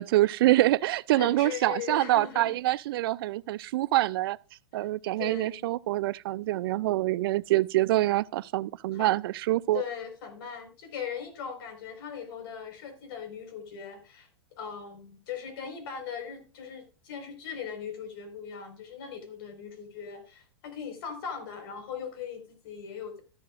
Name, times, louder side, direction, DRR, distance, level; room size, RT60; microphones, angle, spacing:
voice 1, 0.0-4.4 4.7-9.8, right 16 dB, 60° right, 0.4 m, -25 dB
voice 2, 1.1-2.6 4.7-4.9 5.2-5.6 8.9-9.1 9.7-14.3 14.6-23.2, left 7 dB, 60° left, 4.7 m, -39 dB
13.0 x 11.0 x 2.5 m
hypercardioid pair, 105°, 14 cm